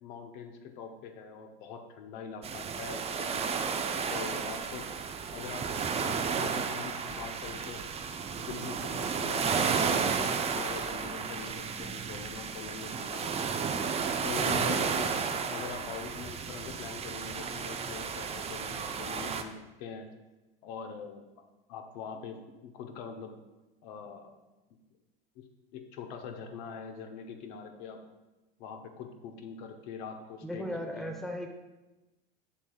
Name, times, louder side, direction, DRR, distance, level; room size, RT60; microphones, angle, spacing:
voice 1, 0.0-3.5 4.1-4.9 5.3-7.8 8.3-13.8 14.2-15.2 15.5-20.1 20.6-21.2 21.7-23.3 23.8-24.3 24.7-24.8 25.4-25.5 25.7-28.0 28.6-31.1, left 6 dB, 60° left, 5 dB, 1.0 m, -43 dB
sound 1, 2.4-19.4, right 6 dB, 20° right, 0.5 m, -32 dB
voice 2, 30.4-31.5, equal, ahead, 3 dB, 0.8 m, -36 dB
7.4 x 7.0 x 2.4 m, 1.1 s
hypercardioid pair, 90°, 29 cm